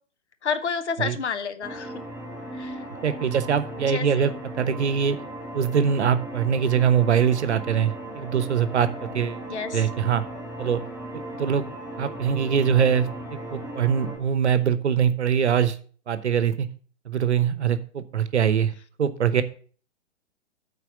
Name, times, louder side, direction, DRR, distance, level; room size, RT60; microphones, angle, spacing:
voice 1, 0.4-2.1 2.5-2.8 3.7-4.3 9.5-9.9, left 6 dB, 60° left, 10 dB, 1.0 m, -30 dB
sound 1, 1.6-14.2, right 1 dB, 5° right, 4.6 m, -37 dB
voice 2, 3.0-5.2 5.5-9.4 9.7-10.2 10.6-10.8 11.4-11.6 12.0-15.8 16.1-16.7 17.1-18.7 19.0-19.4, right 8 dB, 60° right, 13 dB, 0.9 m, -23 dB
9.1 x 4.2 x 6.9 m, 0.44 s
figure-of-eight pair, 115°, 38 cm